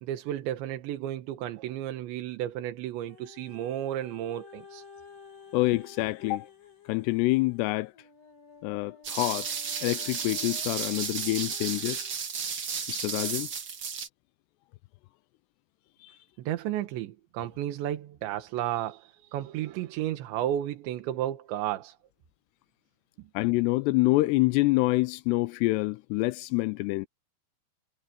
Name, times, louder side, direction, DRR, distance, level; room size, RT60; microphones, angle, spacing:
voice 1, 0.0-4.8 16.4-22.0, right 12 dB, 85° right, 3.7 m, -33 dB
sound 1, 3.1-12.2 12.8-12.9, left 6 dB, 45° left, 5.4 m, -52 dB
voice 2, 5.5-6.5 6.9-7.9 8.6-9.5 9.8-12.0 12.9-13.5 16.0-16.2 23.3-27.1, left 21 dB, 85° left, 2.5 m, -26 dB
sound 2, 9.0-14.1, right 6 dB, 45° right, 1.8 m, -33 dB
omnidirectional pair, 5.1 m